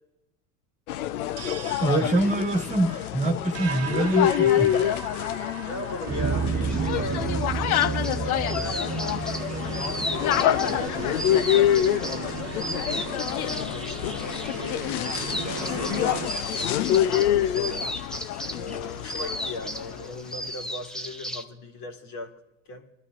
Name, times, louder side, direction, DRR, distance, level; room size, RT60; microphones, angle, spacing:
Namdaemun street market Seoul Korea, 0.9-20.2, left 11 dB, 75° left, 0.8 m, -26 dB
sound 1, 1.4-16.3, right 6 dB, 35° right, 1.1 m, -33 dB
voice 1, 1.8-4.7, right 2 dB, 15° right, 4 dB, 1.5 m, -24 dB
voice 2, 5.2-11.4 12.1-16.3 17.0-18.0 18.5-22.4 22.6-22.9, left 2 dB, 50° left, 1 dB, 2.6 m, -39 dB
sound 2, 6.7-21.4, equal, ahead, 0.7 m, -36 dB
22.0 x 12.5 x 2.5 m, 0.91 s
hypercardioid pair, 95°, 44 cm